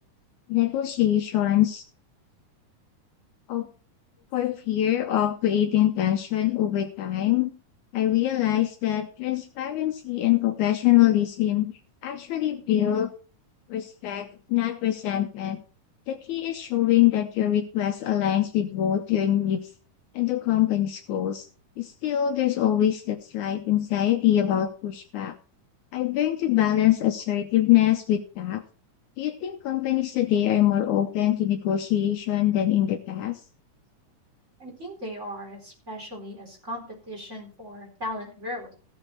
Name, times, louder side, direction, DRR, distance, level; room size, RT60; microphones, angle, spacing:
voice 1, 0.5-1.8 3.5-3.7 4.3-7.5 7.9-11.7 12.0-13.1 13.7-15.6 16.1-19.7 20.2-21.5 21.8-25.4 25.9-28.6 29.2-33.4, left 12 dB, 75° left, 6 dB, 2.0 m, -24 dB
voice 2, 34.6-38.7, equal, 20° right, -1 dB, 4.4 m, -37 dB
16.5 x 7.1 x 4.4 m, 0.40 s
omnidirectional pair, 3.7 m